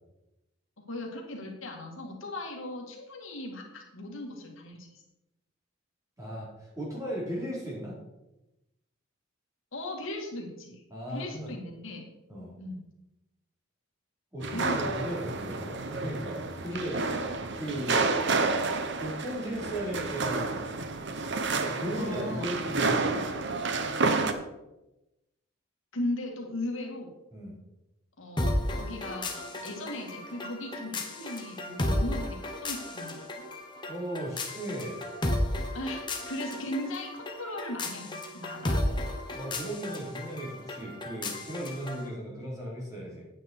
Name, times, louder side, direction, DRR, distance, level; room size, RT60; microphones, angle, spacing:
voice 1, 0.9-4.9 9.7-10.8 11.1-12.0 12.6-12.8 14.5-14.8 16.6-16.7 22.0-22.5 25.9-27.1 28.2-32.4 32.6-33.4 35.7-39.2, left 1 dB, 70° left, 0 dB, 2.2 m, -37 dB
voice 2, 6.2-8.0 10.9-11.5 12.3-12.5 14.3-17.0 17.5-18.1 19.0-20.6 21.6-23.3 27.3-27.6 33.9-35.5 39.3-43.3, right 1 dB, 15° right, -5 dB, 3.7 m, -36 dB
sound 1, 14.4-24.3, right 3 dB, 55° right, 0.9 m, -30 dB
sound 2, 28.4-42.1, left 1 dB, 20° left, 1.3 m, -34 dB
9.2 x 9.2 x 4.6 m, 0.95 s
head